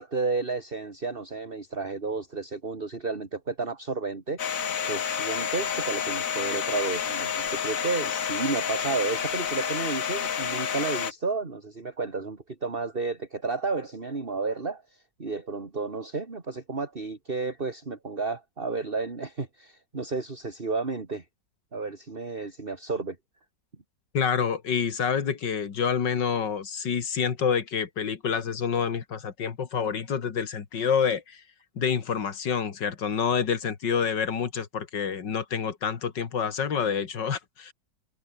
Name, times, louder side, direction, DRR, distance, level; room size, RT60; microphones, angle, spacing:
voice 1, 0.0-21.2 21.7-23.2, right 4 dB, 30° right, 2.6 m, -32 dB
Domestic sounds home sounds, 4.4-11.1, left 7 dB, 50° left, 1.6 m, -29 dB
voice 2, 24.1-31.4 31.8-37.7, left 7 dB, 70° left, 2.6 m, -27 dB
omnidirectional pair, 2.0 m